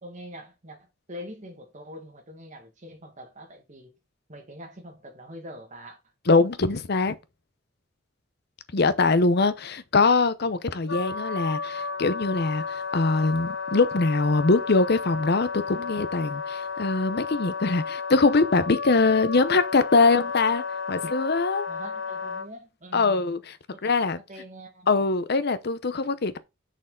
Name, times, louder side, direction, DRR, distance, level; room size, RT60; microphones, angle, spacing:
voice 1, 0.0-3.9 4.3-6.0 21.7-23.2 23.7-23.9 24.3-24.9, equal, 40° right, 1.9 m, -43 dB
voice 2, 6.3-7.2 8.7-21.7 22.9-23.4 23.8-24.2 24.9-26.4, left 3 dB, 55° left, 0.7 m, -23 dB
Wind instrument woodwind instrument, 10.9-22.5, left 5 dB, 90° left, 0.9 m, -32 dB
6.5 x 6.2 x 3.8 m
head